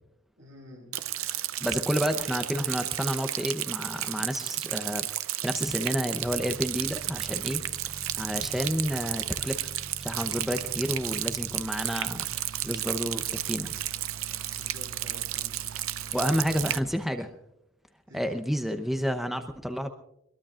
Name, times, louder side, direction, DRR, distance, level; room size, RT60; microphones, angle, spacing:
voice 1, 0.4-1.0 10.6-10.7 14.5-15.6 18.1-18.4, left 1 dB, 65° right, 1 dB, 7.3 m, -49 dB
Rain, 0.9-16.8, right 14 dB, 85° right, 0.6 m, -33 dB
voice 2, 1.6-5.1 5.4-7.6 8.1-9.7 10.0-13.8 16.1-17.3 18.1-19.9, equal, ahead, 6 dB, 0.8 m, -30 dB
sound 1, 6.2-16.9, right 2 dB, 85° left, 4.7 m, -45 dB
23.5 x 22.0 x 2.5 m, 0.80 s
head